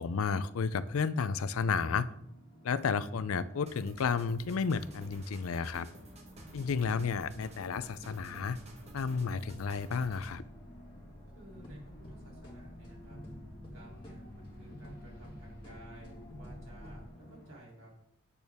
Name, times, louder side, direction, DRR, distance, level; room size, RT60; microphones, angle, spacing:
voice 1, 0.0-2.1 2.6-5.9 6.5-8.6 8.9-10.4, left 5 dB, 85° left, 16 dB, 0.5 m, -32 dB
sound 1, 1.4-17.6, equal, 45° left, 1.7 m, -54 dB
sound 2, 3.7-10.4, right 1 dB, 30° right, 1.3 m, -53 dB
sound 3, 6.3-17.1, left 1 dB, 25° left, 1.6 m, -51 dB
voice 2, 11.3-13.2 13.7-17.9, right 1 dB, 65° right, -4 dB, 3.3 m, -54 dB
8.4 x 6.4 x 3.5 m, 0.74 s
head